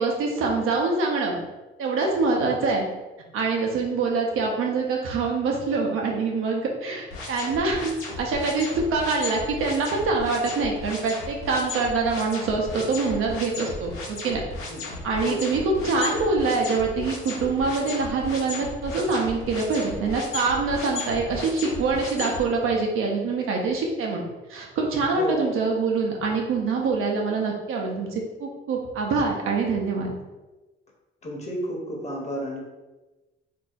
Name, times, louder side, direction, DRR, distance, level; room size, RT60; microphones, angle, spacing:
voice 1, 0.0-1.4 1.8-2.9 3.3-14.4 15.0-24.2 24.5-30.2, right 4 dB, 80° right, 0 dB, 0.7 m, -25 dB
sound 1, 7.1-22.4, left 3 dB, 85° left, 0.9 m, -35 dB
voice 2, 14.7-15.6 25.2-25.5 31.2-32.6, equal, 35° left, -1 dB, 0.9 m, -32 dB
2.7 x 2.3 x 4.0 m, 1.1 s
cardioid pair, 95°, 21 cm